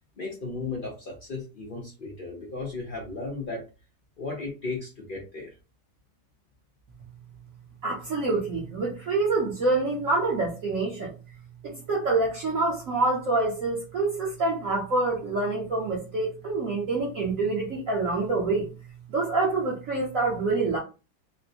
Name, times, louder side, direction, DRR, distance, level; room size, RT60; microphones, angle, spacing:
voice 1, 0.2-3.6 4.2-5.5, left 3 dB, 65° left, 0.5 m, -35 dB
voice 2, 7.8-11.1 11.6-18.7 19.1-20.8, right 3 dB, 55° right, 1.0 m, -26 dB
4.2 x 2.1 x 2.7 m
omnidirectional pair, 1.9 m